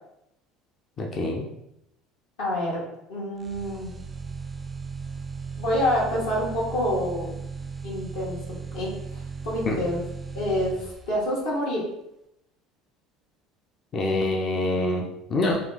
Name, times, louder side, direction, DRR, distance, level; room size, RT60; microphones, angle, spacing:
voice 1, 1.0-1.4 9.7-9.8 13.9-15.6, left 2 dB, 40° left, 1 dB, 0.5 m, -25 dB
voice 2, 2.4-2.8 3.1-3.9 5.6-7.4 7.8-10.0 10.3-11.8, left 1 dB, 70° left, -6 dB, 1.2 m, -27 dB
sound 1, 3.4-11.4, right 5 dB, 20° right, 0.4 m, -37 dB
3.3 x 2.4 x 3.9 m, 0.82 s
figure-of-eight pair, 65°, 0 cm